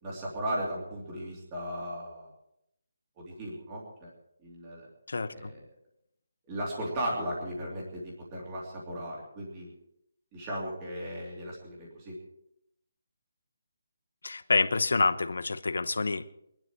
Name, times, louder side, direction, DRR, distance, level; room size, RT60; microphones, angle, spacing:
voice 1, 0.0-2.3 3.2-4.1 4.4-4.9 5.3-5.5 6.5-9.7 10.3-12.2, equal, 15° right, -3 dB, 2.9 m, -36 dB
voice 2, 5.1-5.5 14.2-16.3, left 3 dB, 75° left, 13 dB, 1.0 m, -27 dB
22.0 x 12.0 x 4.6 m, 0.77 s
hypercardioid pair, 180°, 0 cm